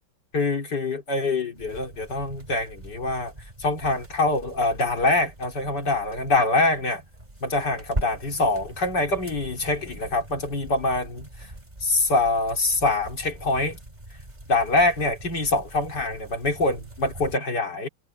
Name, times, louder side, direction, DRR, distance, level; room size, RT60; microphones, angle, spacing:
voice 1, 0.3-3.3 3.6-7.0 7.4-11.5 11.8-13.8 14.5-17.9, left 2 dB, 55° left, 3.9 m, -24 dB
sound 1, 1.6-17.4, right 1 dB, 20° right, 4.5 m, -41 dB
omnidirectional pair, 2.2 m